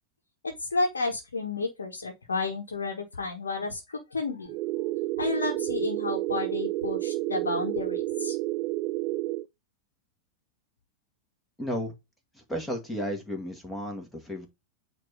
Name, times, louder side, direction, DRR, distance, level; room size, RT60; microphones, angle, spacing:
voice 1, 0.4-4.5 5.2-8.4, left 3 dB, 70° left, 1.4 m, -31 dB
sound 1, 4.5-9.4, right 17 dB, 40° right, 0.3 m, -30 dB
voice 2, 11.6-11.9 12.3-14.5, equal, 10° left, 2.1 m, -33 dB
8.9 x 3.1 x 4.9 m
figure-of-eight pair, 90°, 0 cm